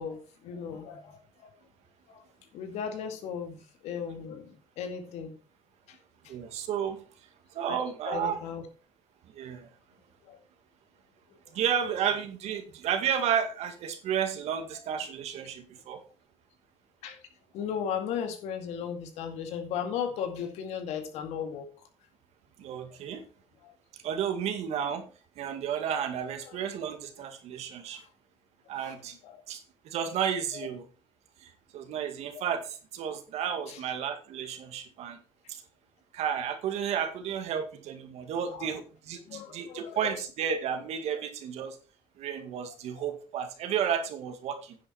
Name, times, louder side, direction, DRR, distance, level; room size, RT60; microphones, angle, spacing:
voice 1, 0.0-1.5 2.1-2.2 2.5-5.4 5.9-6.0 6.2-6.3 7.7-7.8 8.1-8.6 10.2-10.4 11.3-11.4 17.0-17.2 17.5-21.7 23.6-23.7 26.5-26.6 27.9-28.1 28.8-29.0 29.2-29.4 33.6-33.8 38.5-38.7 39.2-40.1 43.0-43.1, left 7 dB, 85° left, 6 dB, 2.2 m, -36 dB
voice 2, 6.3-8.4 9.2-9.7 11.5-16.0 22.6-23.3 23.9-25.1 25.4-28.0 28.7-29.2 29.5-30.9 31.4-35.2 35.5-35.6 36.1-41.8 42.2-44.8, right 8 dB, 75° right, 7 dB, 2.1 m, -32 dB
10.0 x 8.0 x 4.4 m, 0.36 s
cardioid pair, 90°, 11 cm